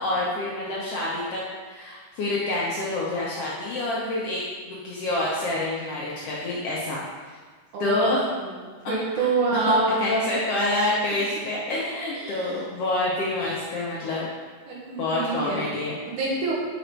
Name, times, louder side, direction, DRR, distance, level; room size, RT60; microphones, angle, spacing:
voice 1, 0.0-7.0 7.8-8.2 9.1-9.7 10.0-14.3 15.0-16.0, left 2 dB, 70° left, -5 dB, 1.5 m, -27 dB
voice 2, 7.7-8.1 8.6-10.2 12.1-12.5 14.7-15.6 16.0-16.5, right 3 dB, 75° right, -4 dB, 2.6 m, -26 dB
5.3 x 5.1 x 4.5 m, 1.5 s
omnidirectional pair, 3.6 m